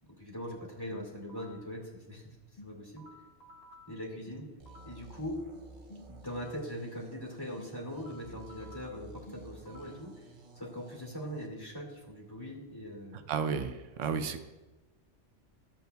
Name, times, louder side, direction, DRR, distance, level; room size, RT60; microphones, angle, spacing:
voice 1, 0.1-2.3 2.6-3.0 3.9-4.5 4.9-5.4 6.1-10.1 10.6-13.2 14.1-14.2, equal, 20° left, -2 dB, 2.2 m, -41 dB
sound 1, 0.9-1.7 2.6-5.1 5.9-6.7 7.6-10.1, left 1 dB, 55° left, 1.6 m, -54 dB
sound 2, 4.6-11.5, right 3 dB, 45° right, 0.9 m, -53 dB
voice 2, 13.3-14.4, right 6 dB, 85° right, 9 dB, 1.0 m, -32 dB
14.5 x 8.0 x 2.3 m, 1.1 s
omnidirectional pair, 1.2 m